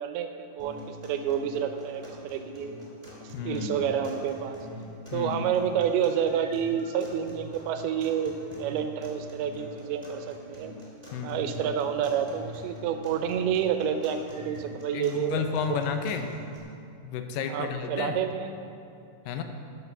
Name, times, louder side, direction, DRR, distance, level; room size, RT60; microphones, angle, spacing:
voice 1, 0.0-2.7 3.2-4.6 5.1-10.7 11.2-15.8 17.5-18.7, right 8 dB, 85° right, 7 dB, 2.7 m, -29 dB
sound 1, 0.6-16.6, equal, 10° right, 2.1 m, -45 dB
voice 2, 3.3-3.9 5.1-5.5 11.1-11.7 14.9-16.3 17.0-18.2 19.3-19.4, left 6 dB, 75° left, 6 dB, 2.2 m, -32 dB
13.5 x 5.9 x 6.0 m, 2.5 s
omnidirectional pair, 4.5 m